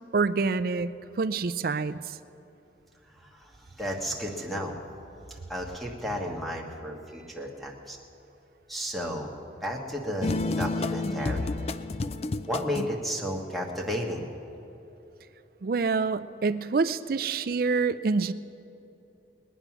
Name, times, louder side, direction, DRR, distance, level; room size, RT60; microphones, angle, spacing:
voice 1, 0.1-0.9 1.2-2.2 15.6-18.3, right 4 dB, 50° right, 13 dB, 0.4 m, -26 dB
voice 2, 3.2-4.8 5.3-8.0 8.7-9.3 9.6-11.5 12.5-14.3, equal, ahead, -1 dB, 1.4 m, -33 dB
sound 1, 10.2-13.0, left 3 dB, 35° left, 0.4 m, -30 dB
21.0 x 9.1 x 6.0 m, 3.0 s
head